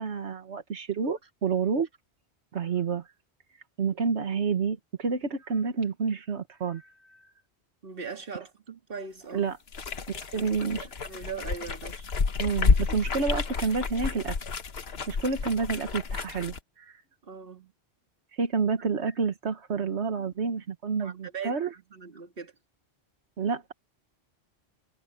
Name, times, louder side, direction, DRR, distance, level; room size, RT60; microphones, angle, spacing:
voice 1, 0.0-1.9 2.5-3.1 3.8-7.3 9.3-9.6 10.1-10.9 11.2-11.3 12.4-14.4 15.1-17.0 18.3-21.7 23.4-23.7, right 5 dB, 90° right, 1.6 m, -29 dB
voice 2, 7.8-9.5 10.3-10.5 11.0-12.1 17.2-17.7 21.0-22.5, right 5 dB, 55° right, 2.4 m, -40 dB
sound 1, 9.7-16.6, left 5 dB, 65° left, 1.4 m, -30 dB
omnidirectional pair, 1.1 m